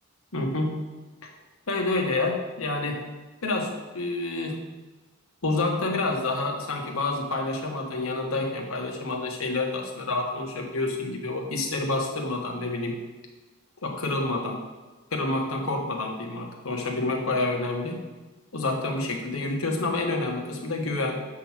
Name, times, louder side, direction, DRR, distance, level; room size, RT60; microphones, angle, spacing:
voice 1, 0.3-0.8 1.2-1.3 1.7-3.1 3.4-4.7 5.4-13.0 13.8-14.7 15.1-18.0 18.5-21.3, left 2 dB, 80° left, 2 dB, 1.3 m, -28 dB
7.5 x 3.8 x 6.1 m, 1.2 s
head